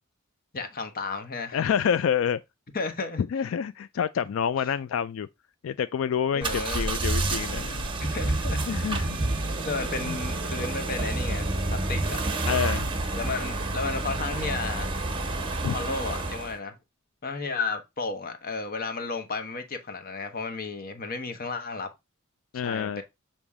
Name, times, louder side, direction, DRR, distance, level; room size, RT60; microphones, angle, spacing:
voice 1, 0.5-1.6 2.7-3.2 6.3-6.9 8.0-8.9 9.6-12.2 13.1-14.9 15.7-16.7 17.2-21.9 22.6-23.0, left 4 dB, 45° left, 1.0 m, -33 dB
voice 2, 1.5-2.4 3.3-5.3 5.6-7.9 8.7-9.2 10.0-10.2 12.5-12.9 15.6-15.8 22.5-23.0, left 8 dB, 70° left, 0.3 m, -28 dB
sound 1, 6.4-16.6, right 2 dB, 25° right, 1.1 m, -29 dB
7.1 x 3.0 x 4.8 m
head